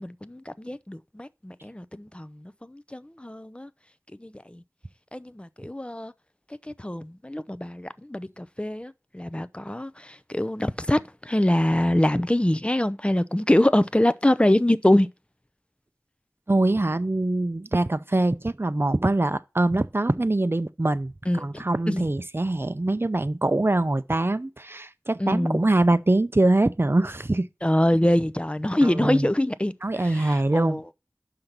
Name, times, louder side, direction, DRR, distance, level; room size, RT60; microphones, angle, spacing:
voice 1, 0.0-3.7 4.2-4.6 5.1-6.1 6.7-15.1 21.3-22.0 25.2-25.6 27.6-29.7 30.0-30.8, left 1 dB, 20° left, 0.6 m, -24 dB
voice 2, 16.5-21.1 21.4-27.5 28.8-29.3 29.8-30.8, right 2 dB, 40° right, 0.6 m, -23 dB
5.9 x 5.7 x 6.6 m
wide cardioid pair, 40°, 6 cm